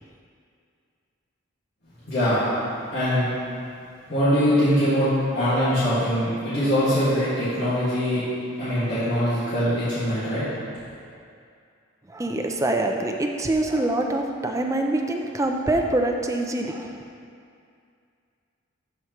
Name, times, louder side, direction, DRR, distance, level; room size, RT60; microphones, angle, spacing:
voice 1, 2.0-2.5 2.9-3.3 4.1-5.1 5.3-8.2 8.6-10.4, equal, 55° left, -13 dB, 1.9 m, -22 dB
voice 2, 12.1-17.0, right 2 dB, 15° right, 2 dB, 0.4 m, -25 dB
12.0 x 4.8 x 3.0 m, 2.4 s
head